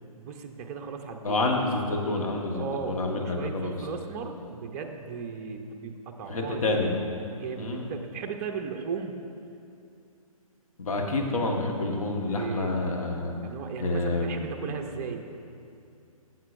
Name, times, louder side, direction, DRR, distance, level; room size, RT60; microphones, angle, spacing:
voice 1, 0.2-1.4 2.5-7.0 7.3-9.2 12.3-12.7 13.4-15.3, right 6 dB, 30° right, 4 dB, 0.6 m, -36 dB
voice 2, 1.2-3.8 6.3-6.9 7.6-7.9 10.8-13.3 13.8-14.5, left 2 dB, 70° left, 1 dB, 1.4 m, -28 dB
13.0 x 7.6 x 2.6 m, 2.5 s
hypercardioid pair, 135°, 19 cm